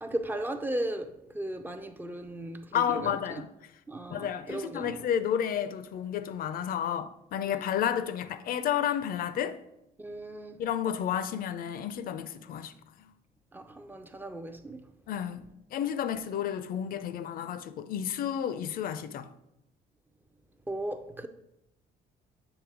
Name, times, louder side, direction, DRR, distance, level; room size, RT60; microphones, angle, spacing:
voice 1, 0.0-3.5 3.9-5.1 7.4-7.8 10.0-10.6 13.5-14.9 20.7-21.3, right 1 dB, 10° right, 0.5 m, -37 dB
voice 2, 2.7-3.5 4.1-9.6 10.6-12.7 13.0-13.1 15.1-19.3, left 9 dB, 60° left, 0.5 m, -31 dB
8.0 x 3.2 x 4.8 m
cardioid pair, 110°, 17 cm